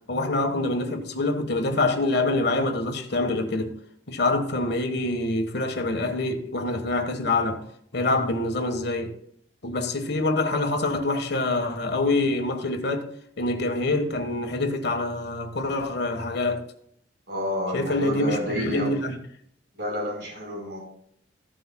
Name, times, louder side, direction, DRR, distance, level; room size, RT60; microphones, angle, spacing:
voice 1, 0.1-3.7 4.1-7.6 7.9-9.1 9.6-13.1 13.4-16.6 17.7-19.2, left 2 dB, 65° left, 1.3 m, -25 dB
voice 2, 17.3-19.0 19.7-20.8, left 1 dB, 70° right, 4.3 m, -30 dB
14.5 x 7.7 x 2.2 m
head